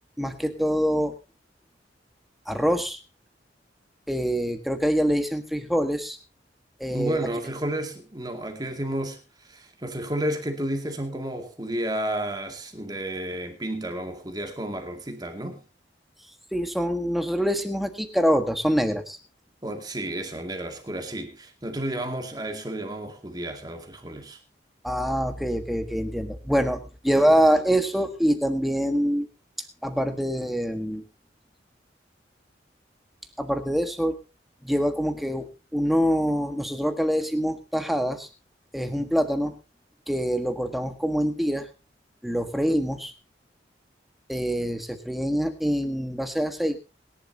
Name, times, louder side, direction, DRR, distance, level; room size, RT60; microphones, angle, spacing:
voice 1, 0.2-1.1 2.5-3.0 4.1-6.2 6.8-7.2 16.5-19.2 24.8-29.3 29.8-31.0 33.4-34.2 34.6-38.3 38.7-39.5 40.1-41.7 42.2-43.1 44.3-46.8, equal, ahead, 1.4 m, -25 dB
voice 2, 6.9-15.6 19.6-24.4, right 1 dB, 20° right, 2.3 m, -32 dB
22.0 x 11.0 x 2.8 m
head